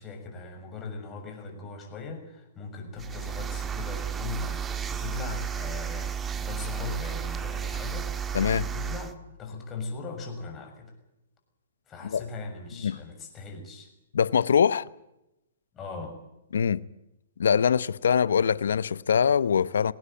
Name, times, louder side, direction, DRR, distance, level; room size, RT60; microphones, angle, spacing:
voice 1, 0.0-10.9 11.9-13.9 15.7-16.2, left 4 dB, 20° left, 6.7 m, -39 dB
sound 1, 3.0-9.1, right 7 dB, 15° right, 1.6 m, -33 dB
voice 2, 8.3-8.7 12.0-12.2 12.8-13.0 14.1-14.8 16.5-16.8 17.4-19.9, left 7 dB, 70° left, 0.8 m, -23 dB
19.5 x 18.5 x 9.1 m
hypercardioid pair, 125°, 0 cm